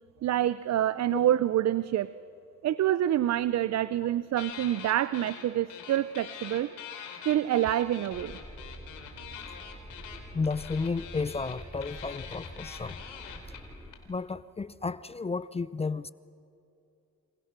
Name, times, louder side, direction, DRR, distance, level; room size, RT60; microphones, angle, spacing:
voice 1, 0.2-2.1 2.6-6.7 7.2-8.4, right 12 dB, 60° right, 16 dB, 0.6 m, -27 dB
sound 1, 4.3-5.4 5.7-13.9, left 8 dB, 90° left, 3.7 m, -44 dB
sound 2, 8.1-13.9, right 1 dB, 5° right, 3.9 m, -46 dB
voice 2, 10.3-13.0 14.1-16.1, left 4 dB, 20° left, 16 dB, 0.6 m, -32 dB
29.0 x 27.5 x 6.1 m, 2.7 s
cardioid pair, 90°, 30 cm